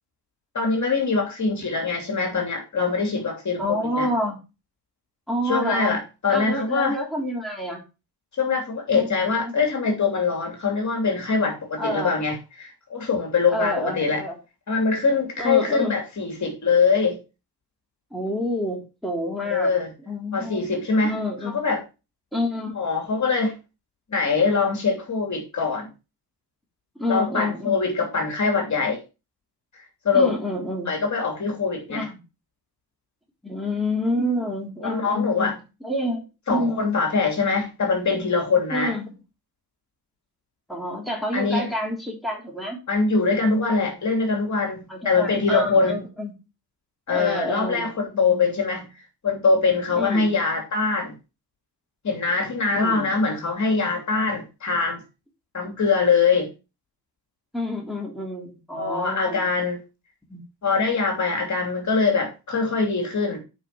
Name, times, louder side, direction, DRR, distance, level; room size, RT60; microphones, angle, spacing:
voice 1, 0.5-4.1 5.4-6.9 8.4-14.2 14.7-17.2 19.5-19.9 20.3-21.2 21.4-21.8 22.7-23.6 24.1-25.9 27.1-29.0 30.0-30.3 30.9-32.1 34.8-35.5 36.5-38.9 41.3-41.7 42.9-46.0 47.1-48.9 49.2-51.1 52.0-55.0 55.5-56.5 58.8-59.8 60.6-63.4, left 4 dB, 50° left, 2 dB, 2.9 m, -23 dB
voice 2, 3.6-4.4 5.3-6.0 6.3-7.8 8.9-9.1 9.4-9.5 11.8-12.2 13.5-14.3 15.4-16.0 18.1-19.7 20.1-20.6 21.0-21.6 22.3-22.8 26.9-27.9 30.1-30.9 31.9-32.2 33.4-35.5 35.8-37.0 38.7-39.1 40.7-42.8 44.9-46.3 47.1-48.5 49.9-50.3 52.8-53.1 57.5-59.4 60.3-60.4, left 1 dB, ahead, -2 dB, 3.4 m, -28 dB
8.5 x 5.2 x 5.7 m, 0.29 s
cardioid pair, 110°, 38 cm